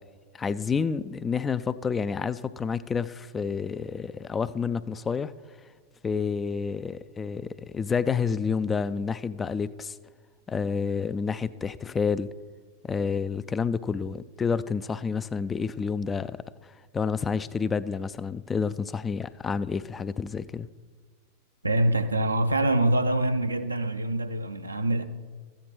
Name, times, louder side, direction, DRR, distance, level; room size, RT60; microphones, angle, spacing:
voice 1, 0.3-5.3 6.0-10.0 10.5-12.3 12.8-20.7, left 5 dB, 15° left, 0.3 m, -29 dB
voice 2, 21.6-25.0, right 1 dB, 80° right, 0.6 m, -25 dB
13.0 x 9.2 x 3.8 m
figure-of-eight pair, 90°, 0 cm